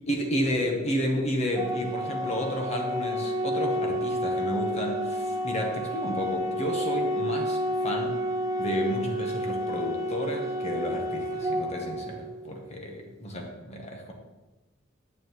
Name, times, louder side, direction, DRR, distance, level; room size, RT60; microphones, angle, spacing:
voice 1, 0.1-8.2 8.6-14.1, equal, 35° left, 1 dB, 1.2 m, -31 dB
sound 1, 0.9-11.0, equal, 55° left, 2.2 m, -49 dB
Organ, 1.6-12.6, equal, 15° right, 0.6 m, -30 dB
9.6 x 7.3 x 3.2 m, 1.1 s
head